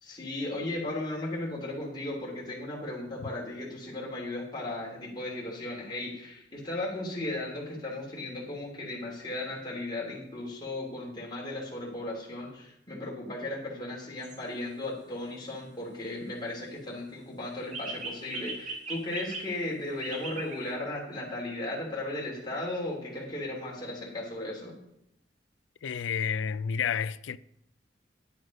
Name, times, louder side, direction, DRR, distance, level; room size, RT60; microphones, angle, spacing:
voice 1, 0.0-24.7, left 2 dB, 25° left, 3.0 m, -36 dB
sound 1, 14.2-14.4 17.7-19.5 20.0-20.7, right 3 dB, 40° right, 1.9 m, -39 dB
voice 2, 25.8-27.4, left 7 dB, 90° left, 0.4 m, -30 dB
10.0 x 7.8 x 5.2 m
head